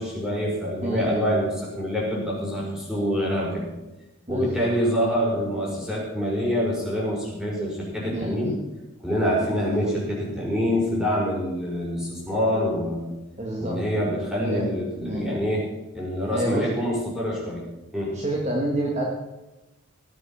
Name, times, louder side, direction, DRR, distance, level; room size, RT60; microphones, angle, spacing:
voice 1, 0.0-3.6 4.3-8.5 9.0-13.1 13.6-15.6 15.9-17.6 17.9-18.2, equal, 5° right, -5 dB, 5.8 m, -26 dB
voice 2, 0.8-1.2 4.3-4.7 8.1-8.5 9.7-9.9 13.4-13.8 14.4-14.6 15.1-15.3 16.3-16.7 18.1-19.0, right 1 dB, 35° right, -2 dB, 2.0 m, -28 dB
18.0 x 9.7 x 5.8 m, 1.0 s
head